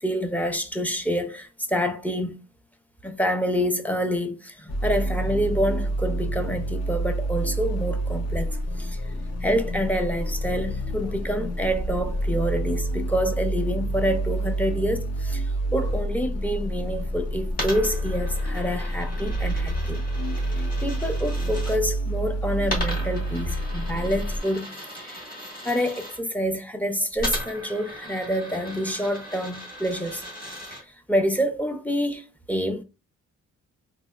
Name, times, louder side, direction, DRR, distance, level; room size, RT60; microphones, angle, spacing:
voice 1, 0.0-2.4 3.0-9.0 9.4-20.0 20.5-25.3 25.6-30.2 30.7-32.8, equal, 5° left, 0.5 m, -27 dB
sound 1, 4.7-24.4, right 1 dB, 55° left, 0.8 m, -28 dB
Coin (dropping), 17.5-21.8 22.6-26.2 27.2-30.8, equal, 30° left, 1.6 m, -36 dB
3.9 x 2.1 x 2.3 m
cardioid pair, 90°, 30 cm